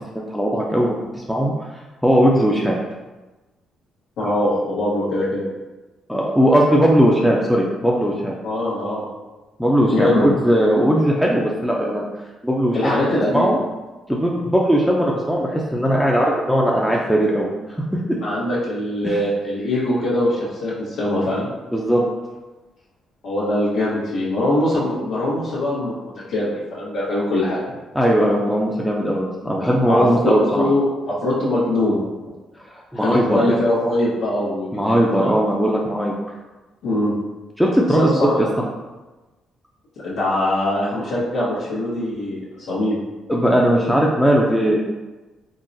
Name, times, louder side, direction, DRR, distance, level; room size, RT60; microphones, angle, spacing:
voice 1, 0.3-1.0 1.3-1.7 2.0-2.8 6.1-8.3 9.6-12.0 12.4-12.9 13.3-13.6 14.1-18.2 19.0-19.2 21.7-22.0 27.9-30.7 32.9-33.4 34.7-36.1 37.6-38.1 43.3-44.8, equal, ahead, -3 dB, 0.3 m, -18 dB
voice 2, 4.2-5.4 8.4-9.0 9.9-10.3 12.7-13.5 18.2-21.5 23.2-27.6 29.9-32.0 32.9-35.3 36.8-37.1 37.9-38.3 40.0-43.0, left 1 dB, 85° left, -12 dB, 0.9 m, -22 dB
3.7 x 2.0 x 2.5 m, 1.2 s
cardioid pair, 90°, 0 cm